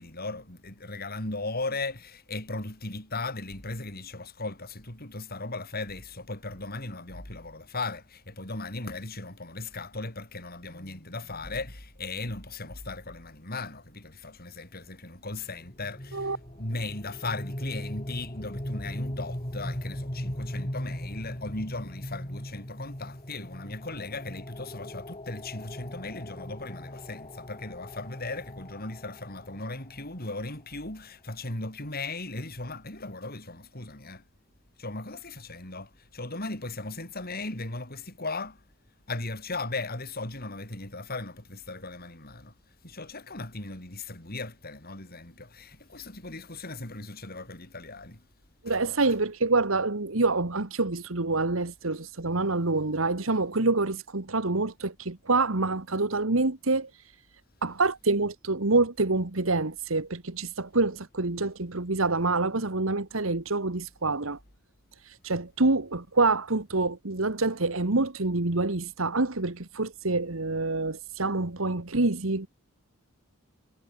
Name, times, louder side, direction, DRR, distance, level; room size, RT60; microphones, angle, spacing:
voice 1, 0.0-34.2 34.8-38.6 39.1-42.5 42.8-48.2 48.6-48.8, left 2 dB, 50° left, 6.8 m, -37 dB
sound 1, 15.6-30.5, equal, 30° left, 4.4 m, -39 dB
voice 2, 48.6-57.2 57.6-64.4 65.0-72.5, right 3 dB, 75° right, 1.7 m, -27 dB
head